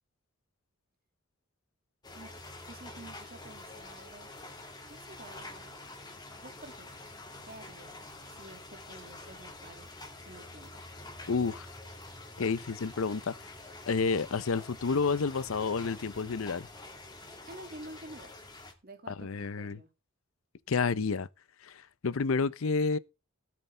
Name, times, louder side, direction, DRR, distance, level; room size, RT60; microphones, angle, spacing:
sound 1, 2.0-18.7, left 2 dB, 20° left, 2.3 m, -47 dB
voice 1, 2.1-4.3 4.8-5.7 6.3-7.0 7.4-9.9 10.3-10.8 17.5-18.3 18.8-19.9, right 1 dB, 45° right, 2.1 m, -50 dB
voice 2, 11.3-11.7 12.4-13.3 13.9-16.7 19.1-19.8 20.7-21.3 21.6-23.0, left 4 dB, 80° left, 0.6 m, -30 dB
17.5 x 8.3 x 3.4 m
head